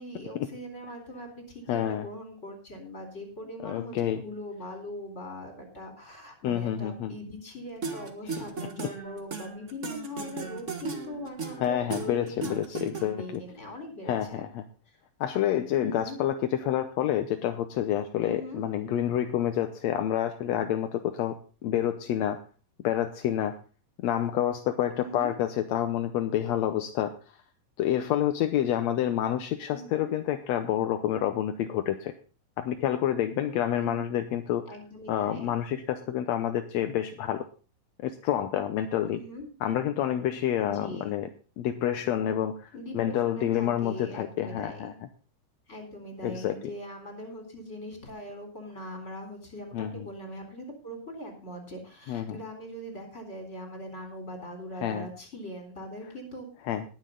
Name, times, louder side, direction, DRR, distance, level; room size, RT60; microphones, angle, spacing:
voice 1, 0.0-14.4 14.9-15.0 15.8-16.2 18.2-18.7 24.9-25.4 29.7-30.1 33.7-34.0 34.7-35.6 39.1-39.5 40.6-41.1 42.7-44.9 45.7-56.5, left 1 dB, 20° left, 4 dB, 4.1 m, -41 dB
voice 2, 1.7-2.1 3.6-4.2 6.4-7.1 11.6-13.4 14.1-14.6 15.2-21.3 21.6-22.4 22.8-23.5 24.0-27.1 27.8-32.1 32.6-34.6 35.1-37.4 38.0-39.2 39.6-41.3 41.6-44.9 46.2-46.6 49.7-50.1 52.1-52.4 54.8-55.1 56.7-56.8, left 11 dB, 75° left, 8 dB, 1.6 m, -28 dB
sound 1, 7.8-13.4, right 4 dB, 75° right, 0.6 m, -37 dB
19.5 x 7.5 x 3.8 m, 0.36 s
omnidirectional pair, 4.0 m